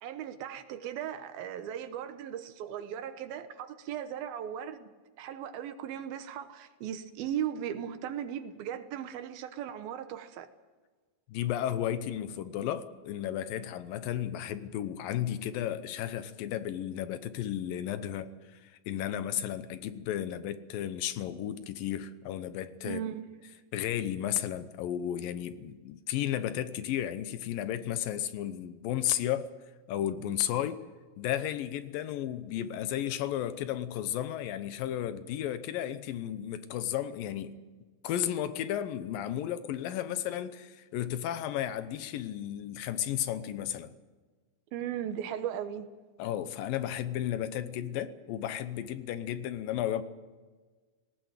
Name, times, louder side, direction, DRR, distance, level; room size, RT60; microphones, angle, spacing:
voice 1, 0.0-10.5 22.8-23.2 44.7-45.9, right 9 dB, 90° right, 3.1 m, -37 dB
voice 2, 11.3-23.0 23.7-29.5 29.9-30.8 31.2-37.6 38.0-43.9 46.2-50.0, left 11 dB, 80° left, 2.6 m, -33 dB
18.5 x 18.0 x 9.1 m
omnidirectional pair, 4.1 m